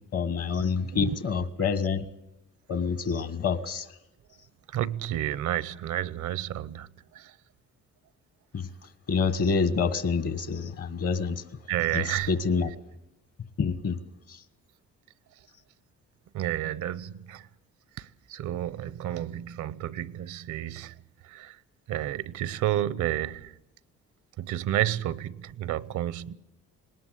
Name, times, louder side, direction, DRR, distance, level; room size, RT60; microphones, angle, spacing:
voice 1, 0.1-2.1 2.7-3.9 8.5-8.7 9.1-11.4 11.9-12.7 13.6-14.0 14.3-14.4, left 5 dB, 50° left, 1.5 m, -27 dB
voice 2, 4.7-7.4 11.7-12.3 16.3-17.5 18.0-20.9 21.2-21.6 21.9-23.6 24.4-26.4, right 12 dB, 75° right, 0.8 m, -31 dB
20.0 x 19.0 x 8.2 m
cardioid pair, 90°, 30 cm